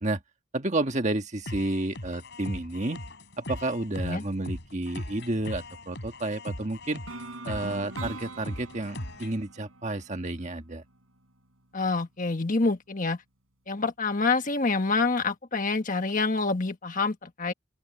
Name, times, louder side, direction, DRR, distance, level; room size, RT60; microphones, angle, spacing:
voice 1, 0.5-3.0 3.4-7.0 7.4-10.8, right 2 dB, 35° right, 1.5 m, -31 dB
sound 1, 1.4-9.4, left 1 dB, 55° left, 5.2 m, -39 dB
sound 2, 7.1-11.0, right 2 dB, 75° right, 6.3 m, -43 dB
voice 2, 11.7-13.2 13.7-17.5, left 3 dB, 40° left, 1.4 m, -27 dB
open air
head